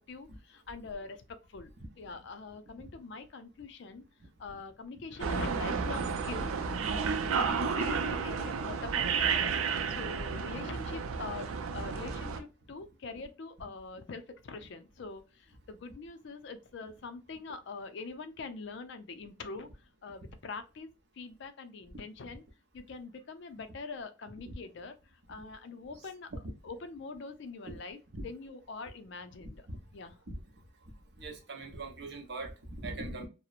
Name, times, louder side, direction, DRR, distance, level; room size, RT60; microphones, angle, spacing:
voice 1, 0.1-1.7 2.0-4.0 4.4-6.5 7.3-22.4 22.7-26.3 26.6-29.7 29.9-30.2, left 4 dB, 55° left, 0.4 m, -44 dB
sound 1, 5.2-12.4, right 5 dB, 85° right, 0.4 m, -32 dB
voice 2, 31.2-33.3, right 2 dB, 55° right, 0.7 m, -41 dB
2.8 x 2.0 x 2.3 m
head